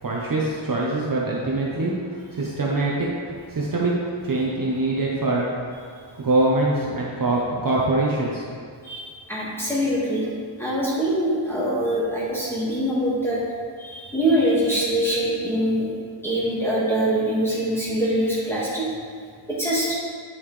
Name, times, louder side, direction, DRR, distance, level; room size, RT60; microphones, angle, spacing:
voice 1, 0.0-2.9 3.3-3.9 4.2-5.4 6.2-8.4, right 2 dB, 45° right, -4 dB, 0.9 m, -23 dB
voice 2, 8.8-10.3 10.6-13.4 13.8-15.9 16.2-18.8 19.5-19.9, right 1 dB, 5° left, -8 dB, 1.8 m, -23 dB
8.9 x 5.5 x 3.3 m, 2.1 s
wide cardioid pair, 130°, 48 cm